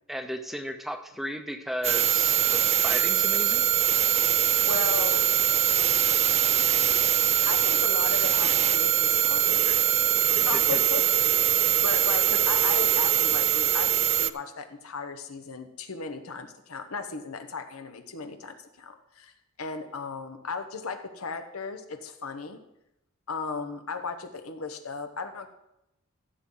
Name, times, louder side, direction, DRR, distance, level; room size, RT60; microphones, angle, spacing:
voice 1, 0.1-3.7 10.4-10.8, equal, ahead, 7 dB, 0.7 m, -35 dB
sound 1, 1.8-14.3, right 11 dB, 30° right, 0.4 m, -23 dB
voice 2, 4.6-5.2 7.5-9.8 10.5-11.3 11.8-19.3 19.6-22.6 23.3-25.5, left 4 dB, 85° left, 7 dB, 1.1 m, -36 dB
15.0 x 7.5 x 3.9 m, 0.86 s
head